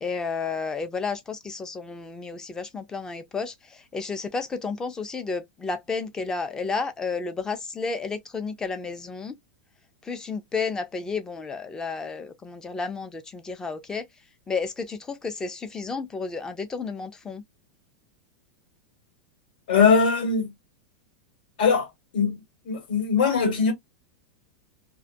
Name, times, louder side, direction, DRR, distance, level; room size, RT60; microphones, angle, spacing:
voice 1, 0.0-9.3 10.0-14.0 14.5-17.4, left 4 dB, 15° left, 0.5 m, -32 dB
voice 2, 19.7-20.5 21.6-21.9 22.1-22.4 22.6-23.7, left 5 dB, 75° left, 1.4 m, -21 dB
2.3 x 2.2 x 2.5 m
supercardioid pair, 145°, 5 cm